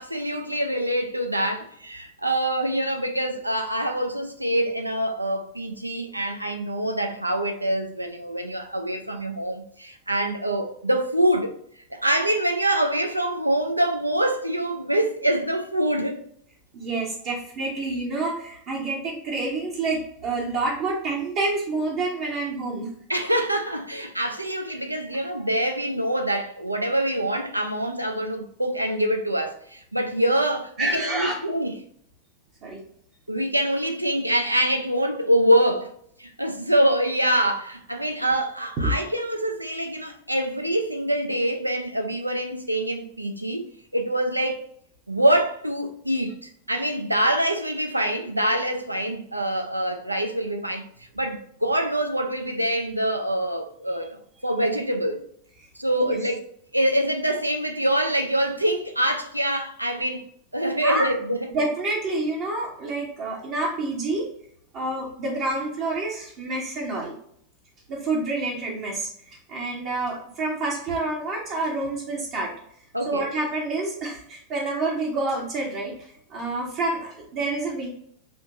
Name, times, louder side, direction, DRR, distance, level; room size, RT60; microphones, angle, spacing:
voice 1, 0.0-11.5 11.9-16.2 23.1-31.7 33.3-35.9 36.2-43.6 43.9-44.6 45.1-50.9 51.1-55.3 55.8-60.2 60.5-61.4 72.9-73.3, right 1 dB, 85° right, 0.4 m, -25 dB
voice 2, 16.7-22.9 30.8-31.4 32.6-32.8 38.8-38.9 55.9-56.2 60.8-61.1 61.5-64.3 64.7-67.1 67.9-72.5 73.1-76.0 76.3-77.9, right 2 dB, 40° right, 0.8 m, -28 dB
4.3 x 2.8 x 2.4 m
figure-of-eight pair, 90°, 0 cm